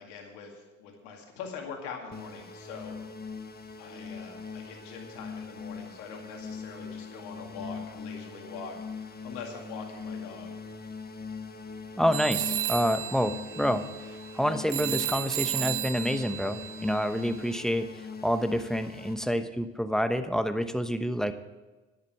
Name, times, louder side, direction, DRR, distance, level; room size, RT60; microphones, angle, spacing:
voice 1, 0.0-3.0 3.8-10.6, left 5 dB, 85° left, 2 dB, 2.2 m, -43 dB
sound 1, 2.1-19.2, left 5 dB, 25° left, 1.4 m, -41 dB
voice 2, 12.0-13.9 14.3-21.3, equal, ahead, 9 dB, 1.0 m, -28 dB
sound 2, 12.1-17.6, right 14 dB, 90° right, 0.6 m, -34 dB
11.0 x 8.0 x 7.4 m, 1.2 s
hypercardioid pair, 55°, 35 cm